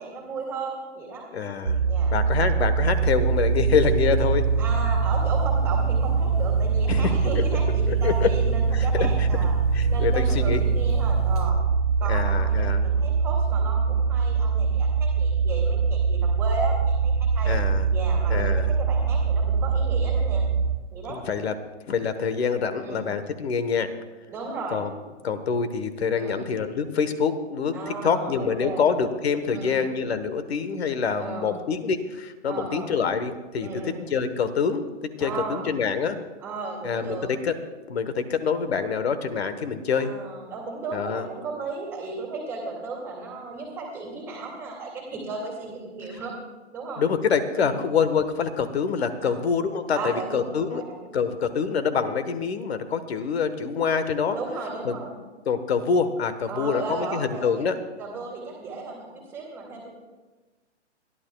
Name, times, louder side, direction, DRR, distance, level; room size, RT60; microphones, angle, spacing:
voice 1, 0.0-1.2 1.8-2.1 4.6-9.5 9.9-11.6 12.0-17.5 17.9-20.4 20.9-21.2 22.8-23.0 24.3-24.8 26.1-26.5 27.7-28.9 29.5-29.8 31.2-31.6 32.5-32.9 33.6-34.0 35.2-35.7 36.4-37.3 39.9-46.4 46.7-47.0 47.5-47.8 49.2-49.4 49.9-51.2 54.3-55.1 56.5-57.7 58.0-59.9, right 3 dB, 5° right, -2 dB, 2.3 m, -35 dB
voice 2, 1.3-1.8 2.1-4.4 6.9-7.6 7.9-8.3 8.7-9.3 9.7-10.6 12.1-12.8 17.5-17.9 18.3-18.7 21.1-21.5 21.9-23.9 24.7-24.9 25.2-36.2 36.8-37.5 37.9-40.1 40.9-41.3 47.0-50.8 51.1-54.4 54.8-55.0 55.5-57.7, left 6 dB, 60° left, 10 dB, 1.3 m, -26 dB
sound 1, 1.7-20.8, right 5 dB, 35° right, 0.4 m, -23 dB
sound 2, 2.9-11.5, left 1 dB, 30° left, 0.7 m, -35 dB
29.0 x 11.5 x 2.3 m, 1.2 s
hypercardioid pair, 175°, 36 cm